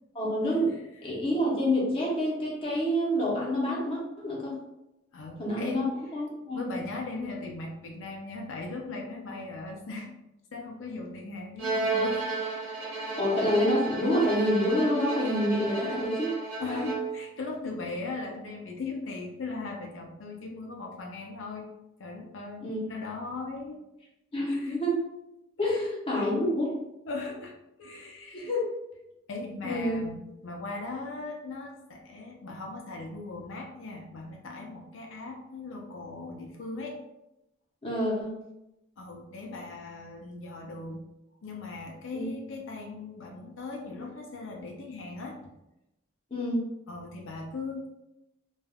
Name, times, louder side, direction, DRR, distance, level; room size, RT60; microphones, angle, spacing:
voice 1, 0.1-0.7 1.0-4.6 5.4-5.9 6.1-6.7 13.1-16.4 16.7-16.9 22.6-22.8 24.3-25.0 25.6-26.7 28.3-28.6 29.6-30.0 37.8-38.3 42.1-42.3 46.3-46.6, equal, 25° left, -4 dB, 0.7 m, -27 dB
voice 2, 5.1-5.9 6.5-10.1 10.5-12.2 15.7-15.9 16.6-21.7 22.0-23.8 24.5-24.8 25.6-25.8 27.1-27.5 27.8-28.5 29.3-36.9 39.0-41.0 41.4-45.5 46.9-47.9, left 3 dB, 75° left, 0 dB, 0.5 m, -39 dB
Bowed string instrument, 11.6-17.3, right 3 dB, 85° right, 1.0 m, -32 dB
3.3 x 2.3 x 2.2 m, 0.90 s
head